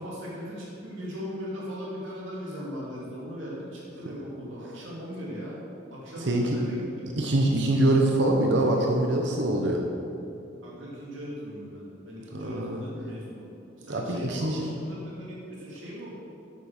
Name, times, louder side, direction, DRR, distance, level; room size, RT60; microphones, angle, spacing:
voice 1, 0.0-5.6 5.9-7.1 7.6-7.8 10.6-13.5 13.8-16.1, equal, 85° right, -6 dB, 2.7 m, -38 dB
voice 2, 7.2-9.8 12.3-12.8 13.9-14.7, right 1 dB, 60° right, 1 dB, 0.9 m, -24 dB
8.8 x 7.2 x 6.4 m, 2.7 s
head